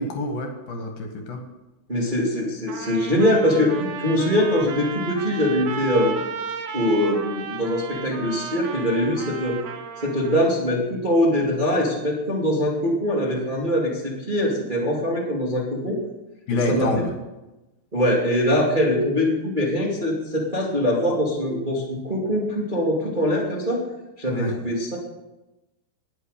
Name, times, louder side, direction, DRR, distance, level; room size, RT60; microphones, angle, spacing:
voice 1, 0.0-1.4 16.5-17.1 24.3-24.5, left 2 dB, 60° left, 4 dB, 2.9 m, -27 dB
voice 2, 1.9-6.2 6.7-9.6 10.0-16.0 16.5-16.9 17.9-23.8 24.2-25.0, left 1 dB, 30° right, -4 dB, 0.8 m, -22 dB
Trumpet, 2.7-10.4, right 6 dB, 70° right, 3.5 m, -34 dB
20.5 x 8.9 x 5.1 m, 1.0 s
omnidirectional pair, 5.6 m